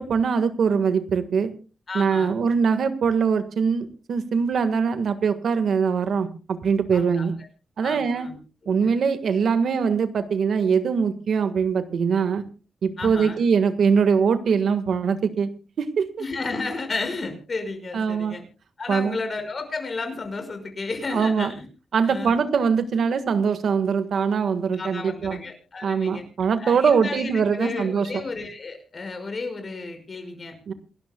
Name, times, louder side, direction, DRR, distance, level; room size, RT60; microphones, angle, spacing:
voice 1, 0.0-1.5 1.9-7.3 7.8-8.3 8.7-12.4 12.8-15.5 15.8-16.1 17.9-18.4 18.9-19.2 21.1-21.5 21.9-25.4 25.8-28.1 30.7-30.8, right 6 dB, 75° right, 10 dB, 1.6 m, -22 dB
voice 2, 1.9-2.4 6.9-7.3 7.8-8.4 8.6-8.9 13.0-13.4 16.2-18.4 18.8-21.7 22.0-22.5 24.8-26.2 26.6-30.6, left 3 dB, 45° left, 6 dB, 5.6 m, -32 dB
28.0 x 12.5 x 2.3 m, 0.33 s
cardioid pair, 85°, 0 cm